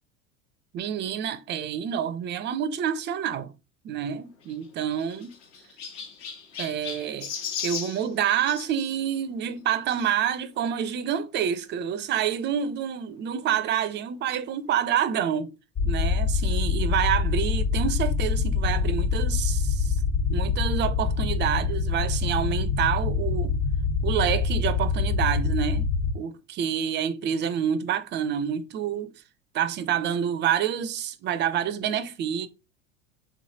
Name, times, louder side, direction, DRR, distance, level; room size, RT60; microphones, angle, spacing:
voice 1, 0.7-3.5 3.8-5.3 6.6-7.3 7.6-15.5 15.8-20.0 20.3-23.6 24.0-25.9 26.1-29.1 29.5-32.5, right 9 dB, 30° right, 0.5 m, -28 dB
Chirp tweet, 4.4-8.7 9.9-10.1 10.8-10.9 11.1-11.2 12.5-12.6, left 7 dB, 55° left, 1.2 m, -37 dB
sound 1, 15.8-26.1, left 5 dB, 35° left, 1.2 m, -25 dB
3.6 x 3.2 x 2.8 m
hypercardioid pair, 100°, 38 cm